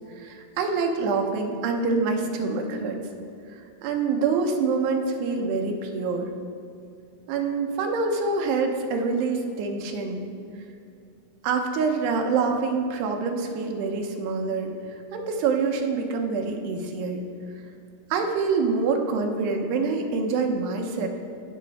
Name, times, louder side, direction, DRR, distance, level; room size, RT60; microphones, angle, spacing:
voice 1, 0.2-3.0 3.5-6.3 7.3-10.3 11.4-14.7 15.1-17.2 18.1-21.1, right 4 dB, 90° right, 3 dB, 3.0 m, -26 dB
16.0 x 6.2 x 3.4 m, 2.6 s
omnidirectional pair, 4.6 m